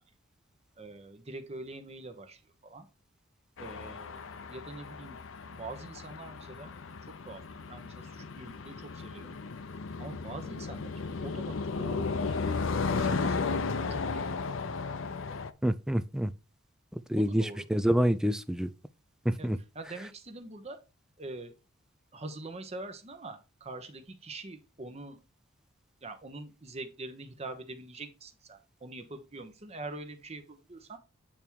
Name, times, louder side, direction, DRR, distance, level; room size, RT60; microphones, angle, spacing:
voice 1, 0.8-2.9 3.6-5.2 5.5-6.8 7.0-9.4 10.0-12.6 13.0-14.4 17.2-17.7 19.4-19.5 19.7-20.8 21.2-21.5 22.1-25.2 26.0-31.0, right 2 dB, 30° right, 0.9 m, -44 dB
sound 1, 3.6-15.5, left 4 dB, 65° left, 0.6 m, -35 dB
voice 2, 15.6-16.3 17.1-18.7 19.3-19.6, equal, 5° right, 0.3 m, -27 dB
8.6 x 3.6 x 4.6 m
head